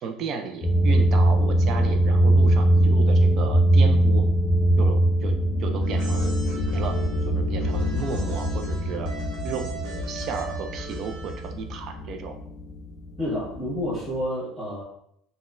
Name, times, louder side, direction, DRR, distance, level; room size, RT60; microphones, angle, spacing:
voice 1, 0.0-4.3 4.8-5.3 5.6-7.0 7.3-9.1 9.4-12.3, right 5 dB, 40° right, 5 dB, 0.3 m, -34 dB
sound 1, 0.6-14.2, right 1 dB, 30° left, 0.4 m, -22 dB
sound 2, 5.8-11.7, right 5 dB, 70° right, 0.9 m, -40 dB
voice 2, 13.2-14.8, left 1 dB, 5° right, -11 dB, 1.3 m, -29 dB
4.0 x 2.1 x 2.4 m, 0.73 s
cardioid pair, 170°, 0 cm